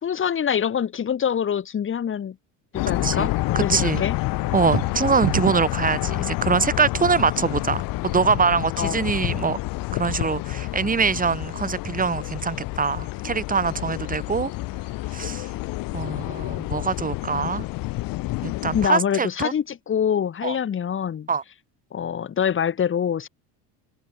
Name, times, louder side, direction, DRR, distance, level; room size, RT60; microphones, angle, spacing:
voice 1, 0.0-2.4 2.7-4.2 8.8-9.0 16.1-16.2 18.7-21.3 21.9-23.3, left 8 dB, 35° left, 4.3 m, -25 dB
sound 1, 2.7-18.9, left 20 dB, 65° left, 3.4 m, -28 dB
voice 2, 3.5-4.0 4.5-9.6 9.9-14.5 15.1-15.5 15.9-17.7 18.4-19.5 20.4-20.6 21.3-21.4, right 5 dB, 20° right, 7.5 m, -24 dB
sound 2, 4.5-5.8, right 20 dB, 65° right, 3.0 m, -28 dB
cardioid pair, 130°, 37 cm